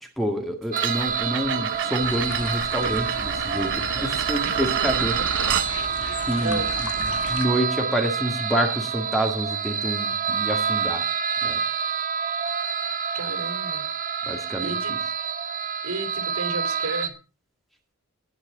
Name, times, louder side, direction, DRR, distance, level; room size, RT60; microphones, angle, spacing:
voice 1, 0.2-5.2 6.3-6.6 7.3-11.0 11.4-11.6 14.2-14.8, equal, ahead, 3 dB, 1.9 m, -27 dB
sound 1, 0.7-17.1, right 6 dB, 35° right, 1.2 m, -28 dB
sound 2, 0.8-5.7, right 9 dB, 55° right, 0.6 m, -29 dB
sound 3, 2.0-7.5, left 3 dB, 85° left, 2.2 m, -36 dB
voice 2, 6.0-6.8 13.1-13.9 14.6-14.9 15.8-17.1, right 2 dB, 75° right, 7 dB, 3.1 m, -33 dB
19.5 x 8.0 x 4.0 m, 0.32 s
head